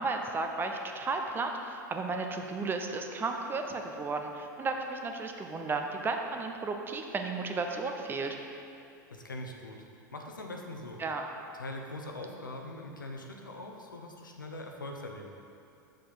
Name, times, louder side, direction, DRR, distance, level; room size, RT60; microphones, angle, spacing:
voice 1, 0.0-8.4 11.0-11.2, right 3 dB, 20° right, 4 dB, 0.7 m, -34 dB
voice 2, 9.1-9.8 10.1-11.0 11.5-15.3, left 1 dB, 85° left, 2 dB, 0.9 m, -42 dB
8.1 x 6.5 x 4.0 m, 2.7 s
figure-of-eight pair, 90°, 11 cm